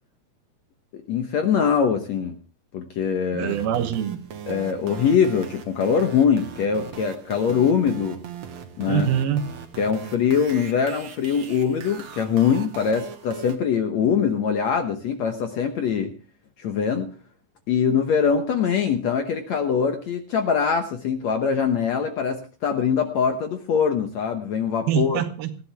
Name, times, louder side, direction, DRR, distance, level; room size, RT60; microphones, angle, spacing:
voice 1, 0.9-2.4 2.7-3.5 4.5-8.2 8.8-9.1 9.8-16.1 16.6-17.1 17.7-25.2, left 7 dB, 65° left, 1.8 m, -23 dB
voice 2, 3.3-4.2 8.9-9.5 24.9-25.6, right 9 dB, 75° right, 3.1 m, -24 dB
sound 1, 3.5-13.6, right 7 dB, 55° right, 2.4 m, -40 dB
19.5 x 14.5 x 3.5 m
omnidirectional pair, 4.4 m